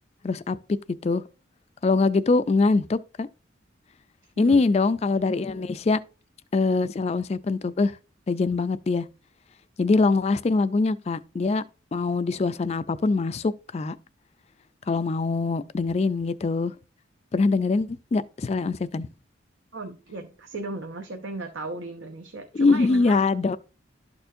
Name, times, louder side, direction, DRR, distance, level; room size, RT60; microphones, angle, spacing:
voice 1, 0.2-0.6 1.0-1.2 1.8-3.3 4.4-6.0 6.5-8.0 8.3-9.0 9.8-11.6 11.9-14.0 14.9-16.7 17.3-19.1 22.5-23.6, left 3 dB, 35° left, 0.3 m, -23 dB
voice 2, 19.7-23.2, right 2 dB, 75° right, 0.8 m, -36 dB
12.0 x 4.3 x 2.6 m
head